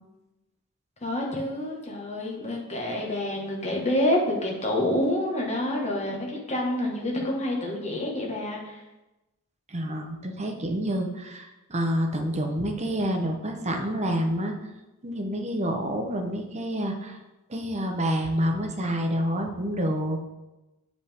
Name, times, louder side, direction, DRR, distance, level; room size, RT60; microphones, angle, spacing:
voice 1, 1.0-8.8, left 1 dB, 30° left, -1 dB, 1.6 m, -28 dB
voice 2, 9.7-14.5 15.0-17.2 17.5-20.2, equal, 30° right, 3 dB, 0.9 m, -28 dB
8.4 x 5.2 x 3.6 m, 1.0 s
head